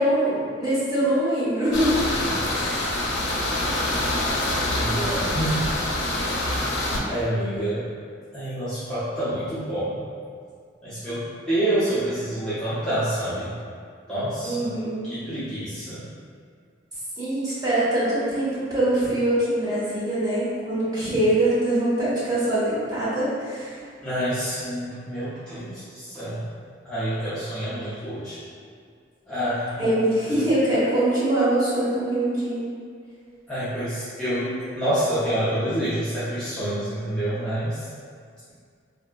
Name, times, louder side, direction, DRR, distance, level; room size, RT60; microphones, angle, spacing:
voice 1, 0.0-2.0 2.5-2.9 14.4-15.2 17.2-23.8 29.8-32.7, right 1 dB, 20° right, -11 dB, 1.0 m, -23 dB
sound 1, 1.7-7.0, left 1 dB, 75° left, 0.5 m, -25 dB
voice 2, 4.5-5.7 7.1-7.8 8.3-10.0 10.8-13.5 14.1-14.7 15.1-16.1 24.0-26.5 26.8-28.4 29.3-29.8 33.5-37.9, right 1 dB, 5° left, -15 dB, 0.5 m, -27 dB
3.3 x 2.4 x 2.3 m, 2.2 s
head